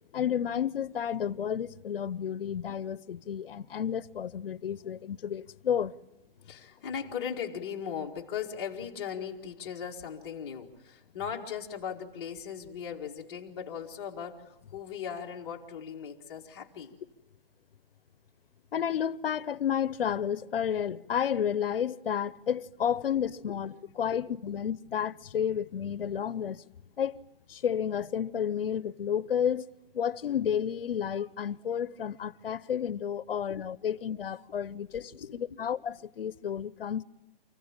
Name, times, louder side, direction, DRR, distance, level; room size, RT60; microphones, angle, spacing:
voice 1, 0.1-5.9 18.7-26.6 27.0-27.2 27.5-29.7 29.9-37.0, left 8 dB, 75° left, 0.8 m, -31 dB
voice 2, 6.5-17.0 24.1-24.2 24.5-24.6 33.3-33.6 33.8-34.0 34.9-35.7, left 7 dB, 25° left, 2.0 m, -38 dB
29.0 x 15.5 x 8.9 m
hypercardioid pair, 175°, 29 cm